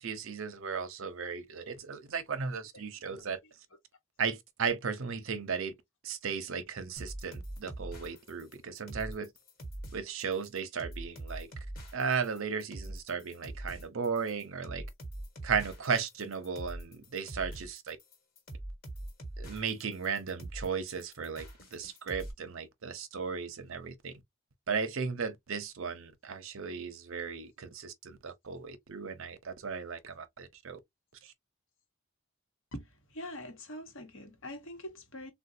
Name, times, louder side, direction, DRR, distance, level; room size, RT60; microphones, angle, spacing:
voice 1, 0.0-3.4 4.2-5.7 6.0-9.3 9.9-11.5 11.9-14.9 15.4-18.0 19.4-21.5 21.7-24.1 24.7-30.8 31.2-31.3, right 6 dB, 70° right, 0.6 m, -35 dB
voice 2, 2.5-3.5 32.7-35.3, left 1 dB, 65° left, 0.9 m, -45 dB
sound 1, 7.0-22.3, right 1 dB, 45° left, 1.2 m, -43 dB
3.7 x 2.2 x 2.6 m
head